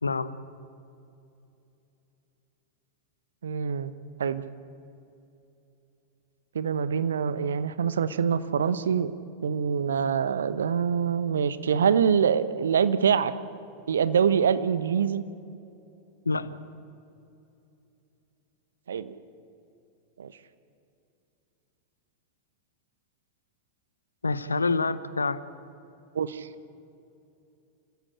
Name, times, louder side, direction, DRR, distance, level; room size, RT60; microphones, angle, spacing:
voice 1, 0.0-0.4 16.2-16.6 24.2-25.4, left 3 dB, 80° left, 16 dB, 0.9 m, -27 dB
voice 2, 3.4-3.9 4.2-4.4 6.5-9.1 9.4-13.3 13.9-15.2 18.9-19.1 20.2-20.3 26.1-26.5, right 7 dB, 65° right, 14 dB, 0.9 m, -25 dB
27.5 x 15.5 x 8.7 m, 2.8 s
figure-of-eight pair, 90°, 0 cm